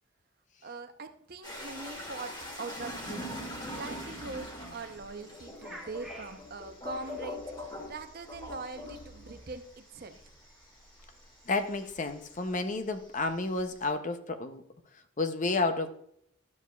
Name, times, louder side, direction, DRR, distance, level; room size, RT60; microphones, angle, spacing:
voice 1, 0.6-2.3 2.6-10.2, right 3 dB, 45° right, 8 dB, 0.6 m, -42 dB
sound 1, 1.4-12.4 12.7-13.9, left 1 dB, 20° left, 1.9 m, -42 dB
sound 2, 3.6-12.6, right 1 dB, ahead, 1.5 m, -56 dB
voice 2, 11.5-14.6 15.2-15.9, left 3 dB, 35° left, 9 dB, 0.5 m, -31 dB
12.0 x 7.1 x 2.3 m, 0.70 s
head